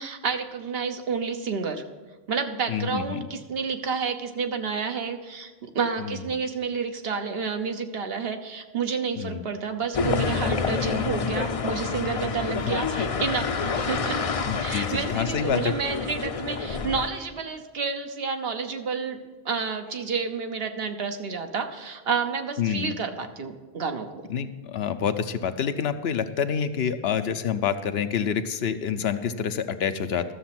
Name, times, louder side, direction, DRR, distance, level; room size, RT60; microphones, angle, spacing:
voice 1, 0.0-1.8 2.3-14.2 14.6-19.2 19.4-24.3, right 5 dB, 70° right, 6 dB, 1.1 m, -30 dB
voice 2, 2.7-3.3 6.0-6.2 9.2-9.4 13.0-13.1 14.5-15.7 22.6-22.9 24.3-30.3, left 7 dB, 80° left, 10 dB, 0.9 m, -27 dB
sound 1, 9.9-17.1, left 5 dB, 40° left, 0.6 m, -28 dB
12.5 x 7.0 x 5.9 m, 1.3 s
omnidirectional pair, 1.0 m